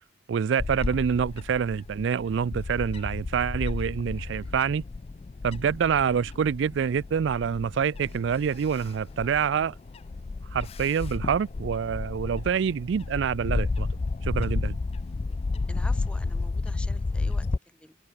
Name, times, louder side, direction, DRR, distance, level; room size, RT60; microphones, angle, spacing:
voice 1, 0.3-4.8 5.4-9.8 10.5-13.9 14.2-14.8, right 7 dB, 60° right, 0.3 m, -26 dB
Bird / Wind, 0.6-17.6, left 3 dB, 30° left, 0.3 m, -32 dB
voice 2, 15.7-18.0, left 1 dB, 5° left, 1.2 m, -47 dB
head